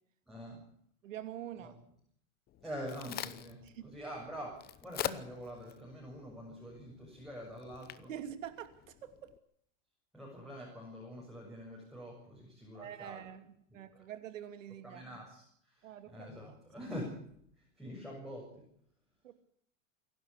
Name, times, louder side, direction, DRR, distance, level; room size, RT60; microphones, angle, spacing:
voice 1, 0.3-0.6 1.6-1.7 2.6-8.1 10.1-13.3 13.9-14.0 14.8-17.1 17.6-18.6, equal, ahead, -4 dB, 7.1 m, -45 dB
voice 2, 1.0-1.8 3.6-3.8 8.1-9.3 12.7-15.1 15.8-16.3 19.2-19.3, right 10 dB, 90° right, 9 dB, 2.8 m, -45 dB
Crack, 2.5-9.4, left 12 dB, 25° left, 0.9 m, -45 dB
27.5 x 12.0 x 8.3 m, 0.68 s
supercardioid pair, 145°, 37 cm